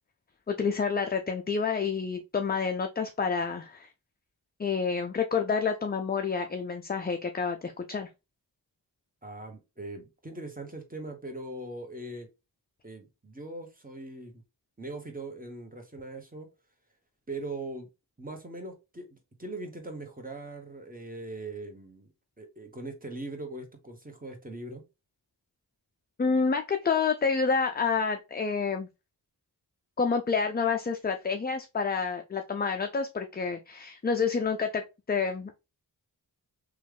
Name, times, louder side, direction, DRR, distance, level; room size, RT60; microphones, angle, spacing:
voice 1, 0.5-3.9 4.6-8.1 26.2-28.9 30.0-34.8 35.1-35.6, left 5 dB, 25° left, 5 dB, 0.4 m, -28 dB
voice 2, 9.2-12.3 12.8-14.4 14.8-16.5 17.3-17.9 18.2-24.8, right 2 dB, 20° right, 4 dB, 1.1 m, -41 dB
3.0 x 2.4 x 3.3 m, 0.26 s
cardioid pair, 40°, 42 cm